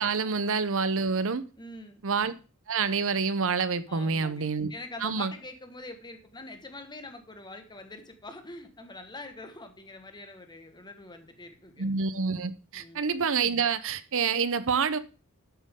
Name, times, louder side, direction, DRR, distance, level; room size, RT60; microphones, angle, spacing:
voice 1, 0.0-1.4 2.0-2.3 2.7-4.7 5.0-5.3 11.8-15.0, right 5 dB, 65° right, 0.8 m, -27 dB
voice 2, 1.5-2.0 3.9-11.9 12.7-13.0, left 2 dB, 20° left, 1.6 m, -44 dB
13.0 x 8.3 x 3.7 m
head